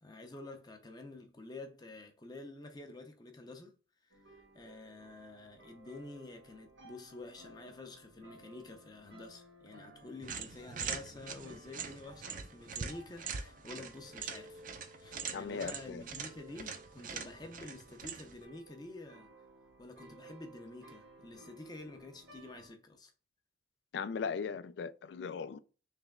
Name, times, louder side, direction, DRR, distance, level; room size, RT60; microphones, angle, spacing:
voice 1, 0.0-3.7 4.3-14.6 15.0-19.3 19.8-23.1, left 2 dB, 20° left, 0.5 m, -49 dB
sound 1, 4.1-22.7, right 1 dB, 80° right, 1.6 m, -58 dB
sound 2, 10.2-18.4, right 6 dB, 45° right, 0.5 m, -43 dB
voice 2, 15.3-16.0 23.9-25.6, left 6 dB, 70° left, 0.3 m, -38 dB
3.3 x 3.0 x 3.5 m
head